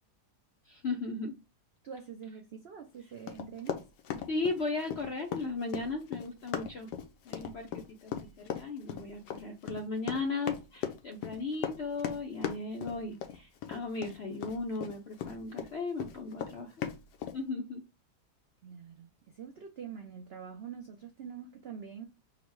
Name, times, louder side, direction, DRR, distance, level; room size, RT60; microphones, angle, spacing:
voice 1, 0.7-1.3 4.2-6.9 7.3-8.1 8.4-16.7 17.3-17.8, left 3 dB, 65° left, 0.6 m, -36 dB
voice 2, 1.8-3.8 18.6-22.1, right 7 dB, 75° right, 0.5 m, -45 dB
Run, 3.3-15.7 16.0-17.4, left 9 dB, 90° left, 1.3 m, -37 dB
3.9 x 2.1 x 4.4 m
omnidirectional pair, 1.8 m